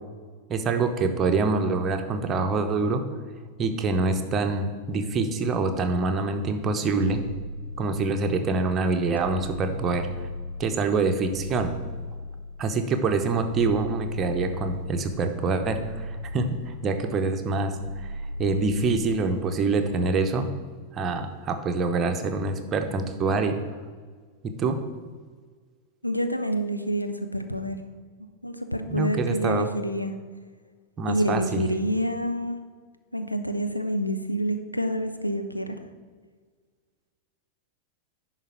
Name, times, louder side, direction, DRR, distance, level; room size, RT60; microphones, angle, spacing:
voice 1, 0.5-3.0 3.6-7.2 7.8-10.1 10.6-11.7 12.6-20.5 20.9-23.6 24.4-24.8 28.9-29.7 31.0-31.6, right 3 dB, 25° right, 6 dB, 0.9 m, -25 dB
sound 1, 7.0-8.3 9.2-10.8 11.3-12.7 13.4-15.1 15.6-17.0 17.7-19.3, left 1 dB, 90° right, 0.6 m, -36 dB
voice 2, 26.0-27.8 28.4-30.1 31.1-32.6 33.1-35.8, equal, 90° left, 8 dB, 0.6 m, -27 dB
10.5 x 4.1 x 6.2 m, 1.5 s
figure-of-eight pair, 90°, 0 cm